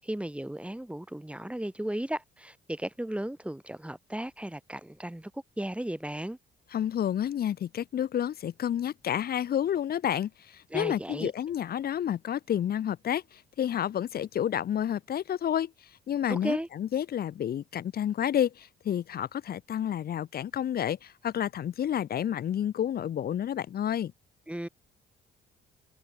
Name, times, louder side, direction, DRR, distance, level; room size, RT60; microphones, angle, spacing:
voice 1, 0.0-6.4 10.7-11.3 16.3-16.7 24.5-24.7, right 1 dB, 5° right, 2.8 m, -35 dB
voice 2, 6.7-15.7 16.1-24.1, left 10 dB, 50° left, 0.6 m, -30 dB
cardioid pair, 90°, 20 cm